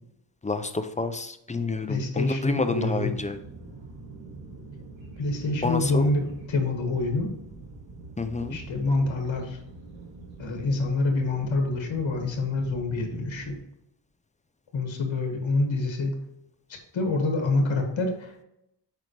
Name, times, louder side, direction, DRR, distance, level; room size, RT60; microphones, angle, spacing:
voice 1, 0.4-3.4 5.6-6.1 8.2-8.6, left 3 dB, 20° left, 9 dB, 0.3 m, -29 dB
voice 2, 1.9-3.1 5.2-7.3 8.5-9.6 10.4-13.5 14.7-16.2 16.9-18.4, left 2 dB, 75° left, 3 dB, 1.6 m, -26 dB
sound 1, 2.9-13.6, right 3 dB, 80° right, 1.9 m, -44 dB
7.5 x 5.2 x 3.2 m, 0.81 s
wide cardioid pair, 155°, 46 cm